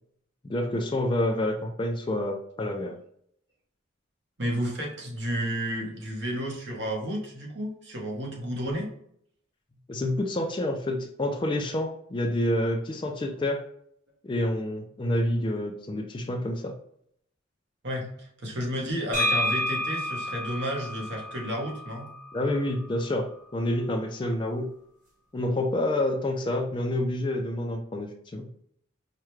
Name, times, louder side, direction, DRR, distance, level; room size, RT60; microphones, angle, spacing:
voice 1, 0.5-3.0 9.9-13.6 14.2-16.8 22.3-23.3 23.5-24.7 25.3-28.5, left 1 dB, 25° left, 4 dB, 0.3 m, -28 dB
voice 2, 4.4-8.9 17.8-22.1, equal, 60° right, -1 dB, 1.1 m, -32 dB
sound 1, 19.1-22.9, left 1 dB, 40° right, 1.3 m, -30 dB
4.7 x 2.2 x 3.1 m, 0.68 s
head